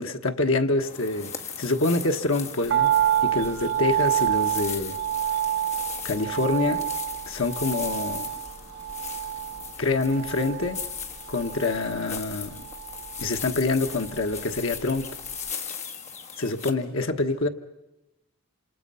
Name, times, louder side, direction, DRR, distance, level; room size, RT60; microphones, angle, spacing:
voice 1, 0.0-1.3 1.6-2.9 3.2-5.0 6.0-6.9 7.3-8.3 9.8-10.8 11.3-12.7 13.2-15.1 16.4-17.5, left 3 dB, 60° left, 1.3 m, -26 dB
sound 1, 0.8-16.7, left 6 dB, 30° left, 1.6 m, -38 dB
sound 2, 2.7-15.0 15.2-15.3, right 11 dB, 50° right, 1.1 m, -28 dB
27.5 x 27.0 x 5.6 m
head